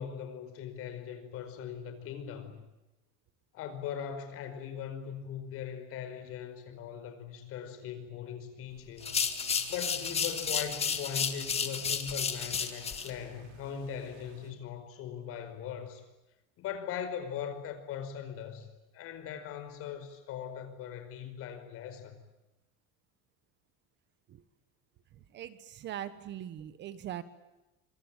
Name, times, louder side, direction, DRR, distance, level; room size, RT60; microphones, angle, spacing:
voice 1, 0.0-2.6 3.5-9.2 9.7-16.0 16.6-18.7 18.9-22.2, left 8 dB, 45° left, 9 dB, 5.1 m, -40 dB
sound 1, 9.0-13.1, left 6 dB, 20° left, 2.0 m, -32 dB
sound 2, 9.0-14.5, right 8 dB, 70° right, 5.3 m, -55 dB
voice 2, 25.3-27.2, right 11 dB, 35° right, 13 dB, 1.3 m, -41 dB
26.0 x 25.5 x 9.0 m, 1.0 s
cardioid pair, 175°, 32 cm